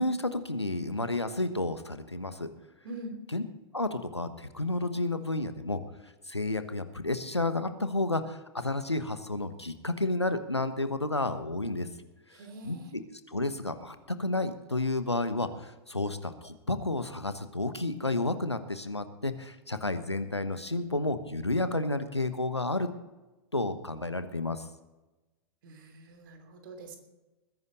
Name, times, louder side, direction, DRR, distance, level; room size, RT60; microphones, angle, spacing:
voice 1, 0.0-2.5 3.3-3.4 3.7-5.8 6.3-11.9 12.6-13.0 13.3-22.9 23.5-24.6, left 2 dB, 85° left, 10 dB, 1.2 m, -31 dB
voice 2, 2.8-3.2 12.3-12.9 25.6-27.0, right 1 dB, 50° right, 5 dB, 3.0 m, -44 dB
20.5 x 10.5 x 4.1 m, 1.1 s
figure-of-eight pair, 100°, 14 cm